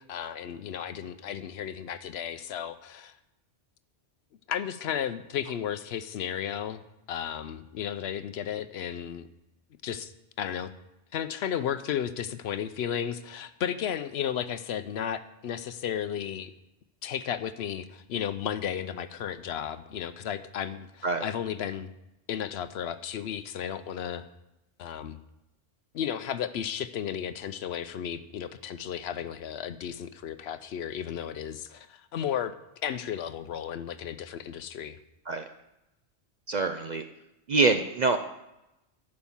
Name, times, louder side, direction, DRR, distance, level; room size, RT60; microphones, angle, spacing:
voice 1, 0.0-3.1 4.5-6.8 7.1-9.3 9.8-10.1 10.4-10.7 11.1-16.5 17.0-21.9 22.3-24.2 24.8-25.2 25.9-32.6 32.8-35.0, left 9 dB, 70° left, 13 dB, 0.8 m, -34 dB
voice 2, 36.5-37.0 37.5-38.2, right 3 dB, 55° right, 8 dB, 0.5 m, -25 dB
11.5 x 5.3 x 7.2 m, 0.94 s
omnidirectional pair, 1.2 m